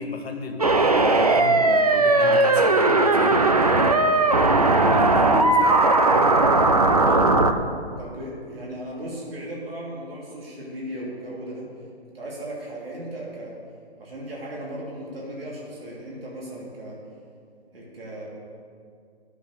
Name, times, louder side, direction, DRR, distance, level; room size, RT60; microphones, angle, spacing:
voice 1, 0.0-3.4 4.8-5.7 7.0-7.4, left 3 dB, 70° left, 4 dB, 1.6 m, -32 dB
sound 1, 0.6-7.5, right 2 dB, 35° right, 0.4 m, -18 dB
voice 2, 5.5-6.0 8.0-11.7 12.1-13.5 14.0-17.0 17.7-18.3, right 1 dB, 60° right, -4 dB, 3.1 m, -36 dB
11.0 x 7.3 x 6.7 m, 2.3 s
hypercardioid pair, 180°, 33 cm